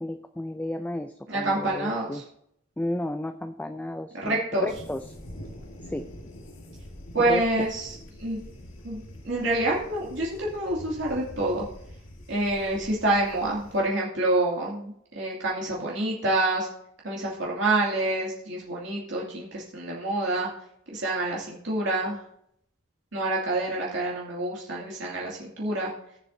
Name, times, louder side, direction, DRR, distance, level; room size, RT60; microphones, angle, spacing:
voice 1, 0.0-2.2 2.8-5.0 5.8-6.1 7.2-7.4, left 1 dB, 10° left, 8 dB, 0.4 m, -33 dB
voice 2, 1.3-2.2 4.2-4.7 7.1-8.4 8.8-11.7 12.3-16.7 17.0-20.5 20.9-22.2 23.1-25.9, right 2 dB, 65° right, -5 dB, 2.5 m, -27 dB
sound 1, 4.7-13.8, equal, 90° left, 2.0 m, -45 dB
18.5 x 7.4 x 2.7 m, 0.71 s
head